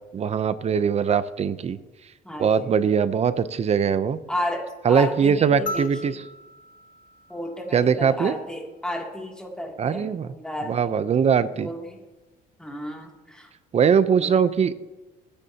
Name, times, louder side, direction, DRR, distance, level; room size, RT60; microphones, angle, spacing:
voice 1, 0.1-1.8 2.4-4.2 4.8-6.2 7.7-8.3 9.8-10.3 10.7-11.7 13.7-14.7, right 7 dB, 40° right, 14 dB, 0.8 m, -21 dB
voice 2, 2.2-2.7 4.3-6.2 7.3-10.9 11.4-12.0 12.6-13.5 14.2-14.3, left 1 dB, 5° left, 0 dB, 2.8 m, -33 dB
sound 1, 5.7-8.2 9.8-9.9, left 2 dB, 55° left, 1.1 m, -38 dB
21.0 x 10.0 x 2.9 m, 1.1 s
cardioid pair, 110°, 17 cm